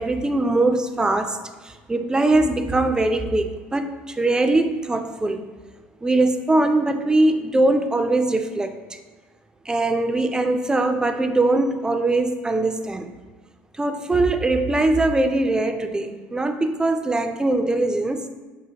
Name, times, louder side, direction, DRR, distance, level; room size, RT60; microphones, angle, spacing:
voice 1, 0.0-1.4 1.6-5.5 6.0-8.8 9.7-13.1 13.8-18.2, right 2 dB, 15° right, 7 dB, 0.4 m, -21 dB
5.3 x 2.8 x 2.8 m, 1.3 s
hypercardioid pair, 75°, 5 cm